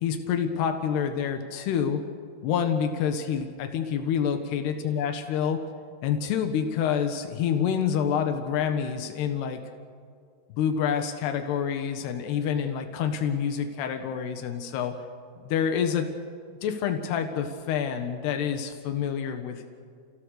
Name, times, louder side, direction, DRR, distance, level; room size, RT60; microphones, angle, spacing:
voice 1, 0.0-2.0 2.4-5.6 6.0-9.6 10.6-15.0 15.4-16.1 16.6-19.7, left 8 dB, 85° left, 6 dB, 3.6 m, -27 dB
30.0 x 17.0 x 6.5 m, 2.2 s
omnidirectional pair, 4.6 m